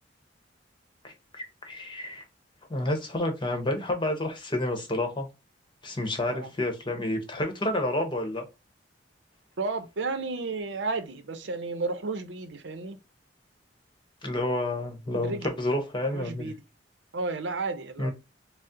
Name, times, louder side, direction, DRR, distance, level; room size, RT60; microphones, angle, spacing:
voice 1, 1.0-2.2 2.7-5.3 5.8-8.5 14.2-16.5 18.0-18.1, left 1 dB, 25° left, 0.9 m, -29 dB
voice 2, 9.6-13.0 15.2-15.5 16.0-16.6 17.1-18.1, right 3 dB, 75° right, 0.6 m, -32 dB
4.1 x 2.0 x 3.6 m
head